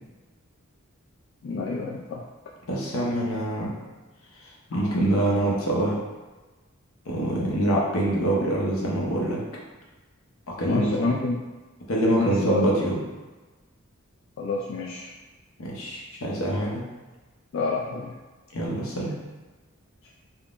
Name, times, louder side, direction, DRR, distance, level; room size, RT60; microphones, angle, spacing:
voice 1, 1.4-2.2 4.7-4.8 10.7-11.4 12.1-12.8 14.4-15.1 17.5-18.1, left 3 dB, 60° left, -4 dB, 0.3 m, -28 dB
voice 2, 2.7-3.7 4.7-5.9 7.1-9.4 10.5-11.1 11.9-13.0 15.6-16.8 18.5-19.1, right 1 dB, 80° left, -3 dB, 0.7 m, -25 dB
3.5 x 2.0 x 2.4 m, 1.2 s
head